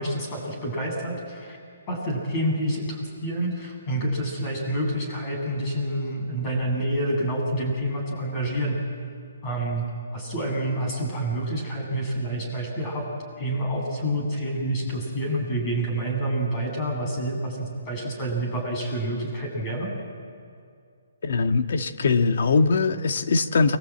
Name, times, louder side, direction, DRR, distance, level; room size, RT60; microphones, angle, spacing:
voice 1, 0.0-1.6 1.9-8.8 9.4-9.8 10.1-13.1 13.4-19.9, right 1 dB, 20° left, 1 dB, 7.7 m, -28 dB
voice 2, 21.2-23.8, left 4 dB, 55° left, 7 dB, 1.6 m, -21 dB
29.5 x 22.5 x 8.9 m, 2.3 s
hypercardioid pair, 165°, 0 cm